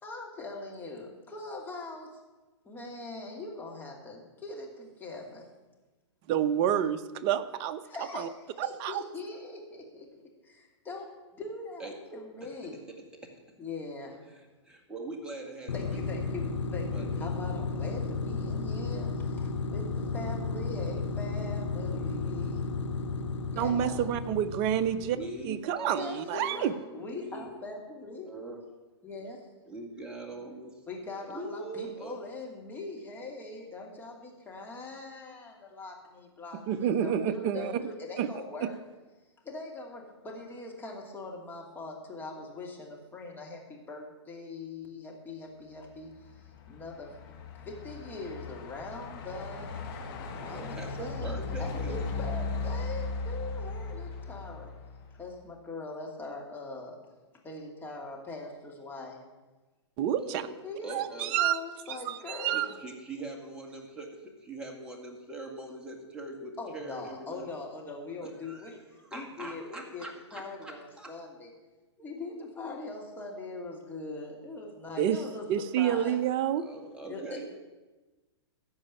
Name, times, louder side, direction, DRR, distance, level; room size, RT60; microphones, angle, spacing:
voice 1, 0.0-2.2 2.6-5.5 7.9-11.1 11.3-12.8 13.6-14.3 15.7-22.6 23.5-24.0 26.0-28.3 29.0-29.4 30.9-38.8 39.4-46.1 46.7-47.1 47.6-49.7 50.3-54.7 55.2-56.9 57.4-59.2 60.6-62.8 66.6-68.8 69.1-70.0 70.3-71.5 72.0-75.4 75.8-76.2 77.0-77.4, left 3 dB, 15° left, -1 dB, 2.6 m, -42 dB
voice 2, 6.3-7.8 8.1-8.3 8.6-9.0 23.6-25.2 25.4-26.7 36.7-37.9 38.2-38.3 38.6-38.7 60.0-60.4 60.9-61.6 61.9-62.7 75.0-75.2 75.5-76.6, right 10 dB, 35° right, 12 dB, 0.7 m, -28 dB
voice 3, 14.3-16.3 16.8-17.3 25.1-27.5 28.3-28.6 29.7-30.8 31.3-32.2 50.5-52.1 60.2-60.5 60.8-61.4 62.5-64.2 64.4-67.5 68.2-71.1 76.6-77.5, right 2 dB, 5° right, 0 dB, 2.0 m, -42 dB
sound 1, 15.7-25.5, left 3 dB, 80° left, 1.0 m, -33 dB
Truck, 46.0-55.3, left 4 dB, 50° left, 2.1 m, -37 dB
14.5 x 5.3 x 9.1 m, 1.2 s
hypercardioid pair, 125°, 15 cm